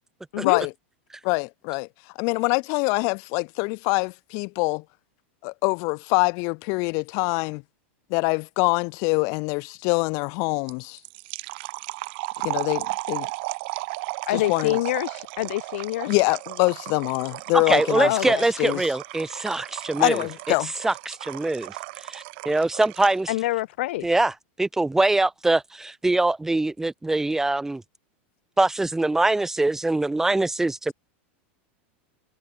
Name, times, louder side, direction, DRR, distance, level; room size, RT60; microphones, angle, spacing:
voice 1, 1.2-1.9 2.2-4.8 5.4-7.6 8.1-11.0 12.4-13.3 14.3-14.8 16.1-18.8 20.0-20.7, left 33 dB, 55° left, 1.9 m, -24 dB
sound 1, 10.7-23.3, right 26 dB, 60° right, 5.0 m, -35 dB
voice 2, 14.3-16.1 17.9-18.4 23.3-24.1, left 17 dB, 70° left, 1.0 m, -26 dB
voice 3, 17.5-20.2 20.8-21.8 22.0-23.3 24.0-24.3 24.6-27.8 28.6-30.9, right 2 dB, 5° right, 0.8 m, -23 dB
supercardioid pair, 125°, 7 cm